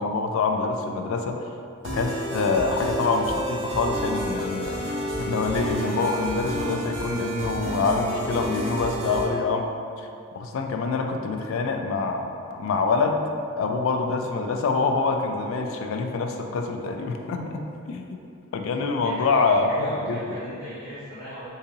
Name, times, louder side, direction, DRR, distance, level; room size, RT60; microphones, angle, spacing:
voice 1, 0.0-1.5 1.9-9.7 10.0-10.1 10.4-12.2 12.5-13.2 13.6-18.2 18.5-20.4, left 4 dB, 70° left, 4 dB, 0.3 m, -25 dB
sound 1, 1.8-9.2, right 1 dB, 60° right, 0.8 m, -30 dB
voice 2, 18.7-21.5, equal, 25° right, -16 dB, 0.9 m, -38 dB
3.9 x 2.7 x 2.7 m, 2.5 s
head